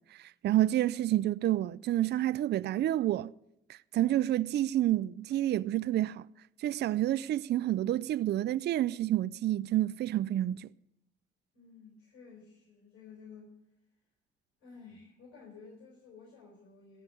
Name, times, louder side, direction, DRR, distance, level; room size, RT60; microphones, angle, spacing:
voice 1, 0.0-3.3 3.7-6.3 6.6-10.7, right 13 dB, 55° right, 0.4 m, -29 dB
voice 2, 11.5-13.5 14.6-17.0, left 5 dB, 85° left, 4.6 m, -53 dB
15.5 x 5.7 x 9.9 m
cardioid pair, 90°, 20 cm